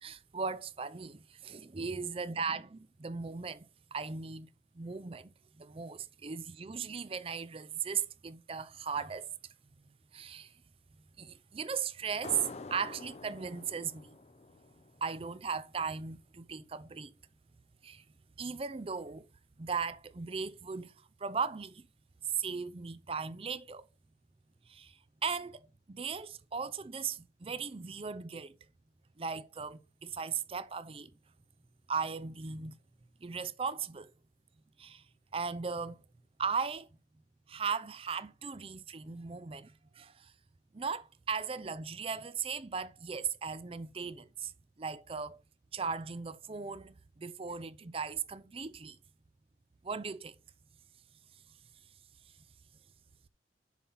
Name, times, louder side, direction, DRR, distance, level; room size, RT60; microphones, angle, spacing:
voice 1, 0.0-5.3 5.6-9.3 10.1-10.5 11.2-12.4 12.7-14.2 15.0-17.1 17.8-18.0 18.4-19.3 19.6-21.9 22.3-23.9 24.7-28.6 29.2-31.1 31.9-32.8 33.2-34.1 34.8-35.0 35.3-36.0 36.4-36.9 37.5-40.3 40.7-44.5 44.8-45.4 45.7-49.0 49.8-50.4, right 5 dB, 30° right, 0.5 m, -37 dB
sound 1, 12.2-15.5, left 3 dB, 40° left, 0.5 m, -47 dB
7.2 x 3.9 x 5.6 m
head